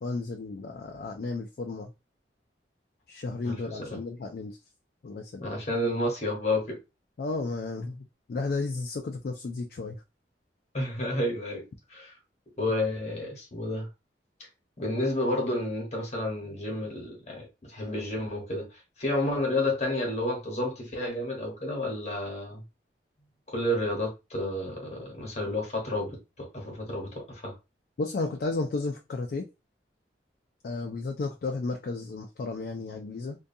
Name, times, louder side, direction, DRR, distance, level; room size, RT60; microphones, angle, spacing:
voice 1, 0.0-1.9 3.1-4.6 5.0-5.5 7.2-10.0 28.0-29.4 30.6-33.4, left 3 dB, 55° left, 0.3 m, -33 dB
voice 2, 3.4-4.0 5.4-6.8 10.7-11.6 11.9-12.2 12.6-13.9 14.8-18.7 19.0-22.6 23.5-27.5, left 1 dB, 40° left, 1.0 m, -30 dB
2.5 x 2.2 x 2.6 m
head